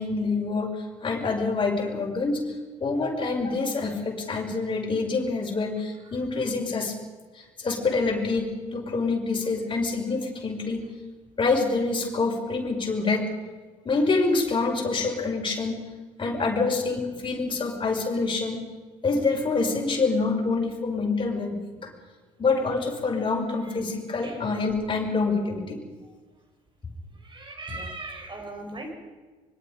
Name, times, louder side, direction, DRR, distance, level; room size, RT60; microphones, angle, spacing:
voice 1, 0.0-2.4 2.8-6.9 7.4-10.9 11.4-13.3 13.8-15.8 16.2-18.6 19.0-21.9 22.4-25.8, left 3 dB, 30° left, 1 dB, 6.2 m, -26 dB
voice 2, 27.2-28.9, right 2 dB, 30° right, 4 dB, 5.9 m, -38 dB
25.0 x 23.0 x 5.3 m, 1.3 s
figure-of-eight pair, 50°, 16 cm